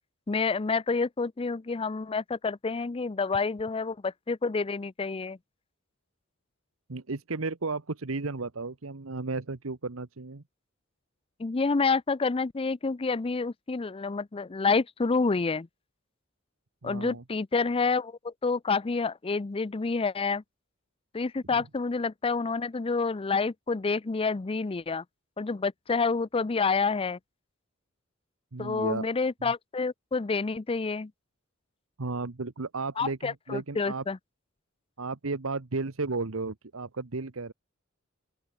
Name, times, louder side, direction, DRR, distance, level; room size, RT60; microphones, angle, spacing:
voice 1, 0.3-5.4 11.4-15.7 16.8-20.4 21.1-25.0 25.4-27.2 28.6-31.1 33.0-34.2, left 4 dB, 25° left, 0.5 m, -28 dB
voice 2, 6.9-10.4 16.8-17.2 21.5-21.6 28.5-29.0 29.4-29.5 32.0-34.0 35.0-37.5, right 3 dB, 85° right, 1.1 m, -34 dB
open air
head